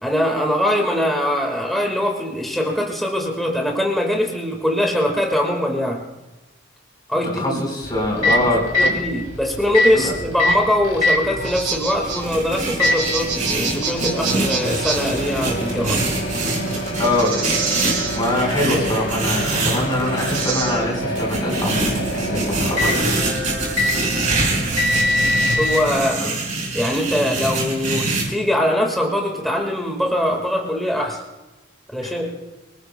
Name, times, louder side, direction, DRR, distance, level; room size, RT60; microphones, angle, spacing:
voice 1, 0.0-6.0 7.1-7.6 8.2-16.0 25.6-26.2 26.7-31.2 31.9-32.3, equal, ahead, 0 dB, 1.7 m, -22 dB
voice 2, 7.3-8.9 9.9-10.1 17.0-17.4 18.1-23.2 26.2-26.3 32.0-32.3, left 1 dB, 25° left, -1 dB, 4.3 m, -23 dB
Microwave oven, 7.8-25.8, left 1 dB, 65° left, 3.0 m, -25 dB
sound 1, 11.2-26.0, right 4 dB, 70° right, 3.8 m, -30 dB
sound 2, 12.0-20.4 21.2-28.2, right 2 dB, 40° right, 5.6 m, -25 dB
27.0 x 19.0 x 2.2 m, 1.0 s
head